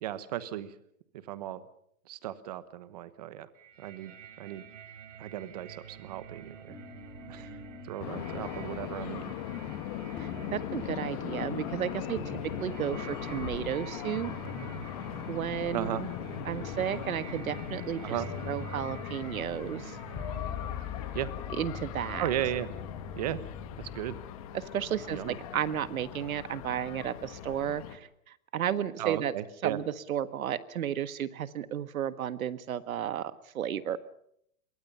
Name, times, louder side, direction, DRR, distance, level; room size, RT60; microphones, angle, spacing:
voice 1, 0.0-0.7 1.3-1.6 2.1-3.5 3.8-4.6 5.2-6.8 7.3-7.5 7.8-9.3 15.7-16.0 18.0-18.3 21.1-21.3 22.2-22.7 23.2-23.4 23.8-24.2 25.1-25.4 29.0-29.8, right 12 dB, 30° right, 14 dB, 1.1 m, -35 dB
sound 1, 3.6-23.3, right 8 dB, 55° right, 4.0 m, -48 dB
sound 2, 6.7-9.9 10.1-11.8 12.1-13.7 14.2-15.7 16.1-24.4, left 5 dB, 10° left, 1.8 m, -44 dB
sound 3, 8.0-28.0, left 11 dB, 25° left, 1.3 m, -40 dB
voice 2, 10.1-14.3 15.3-16.1 16.4-18.2 18.4-20.0 21.5-22.3 24.5-29.3 29.6-34.0, right 10 dB, 70° right, 13 dB, 1.6 m, -33 dB
26.0 x 22.5 x 5.6 m, 0.71 s
hypercardioid pair, 180°, 43 cm